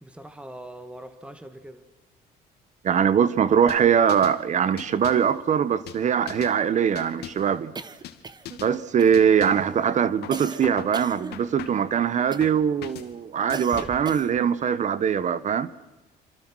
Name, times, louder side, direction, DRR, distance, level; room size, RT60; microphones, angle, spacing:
voice 1, 0.0-1.9, right 1 dB, 5° right, 1.8 m, -42 dB
voice 2, 2.8-7.7 8.6-15.7, right 8 dB, 45° right, 1.1 m, -22 dB
sound 1, 3.7-4.4 4.8-5.3 5.9-6.6 6.9-7.5 8.0-8.2 8.5-8.8 9.1-9.7 10.2-10.9 11.3-11.9 12.4-13.1 13.5-14.1, left 11 dB, 75° left, 2.3 m, -41 dB
sound 2, 7.7-8.7 9.0-9.5 10.3-11.8 12.3-12.7 13.5-14.5, right 4 dB, 25° right, 1.2 m, -39 dB
27.0 x 27.0 x 6.3 m
cardioid pair, 110°, 17 cm